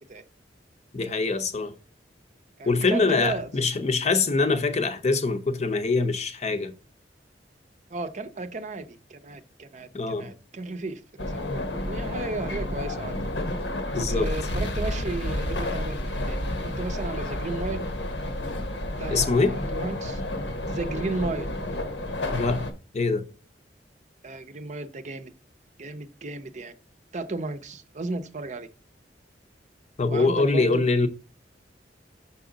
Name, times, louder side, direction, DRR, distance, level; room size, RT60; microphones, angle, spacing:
voice 1, 0.9-1.8 2.7-6.7 9.9-10.3 13.9-14.3 19.1-19.5 22.3-22.7 22.9-23.2 30.0-31.1, left 3 dB, 40° left, 0.7 m, -24 dB
voice 2, 2.6-3.6 7.9-13.2 14.1-17.8 19.0-20.2 20.7-21.5 24.2-25.3 25.8-26.7 27.1-28.7 30.1-30.8, right 2 dB, 40° right, 0.6 m, -34 dB
sound 1, 11.2-22.7, left 1 dB, 85° left, 1.1 m, -30 dB
6.1 x 5.4 x 3.8 m
head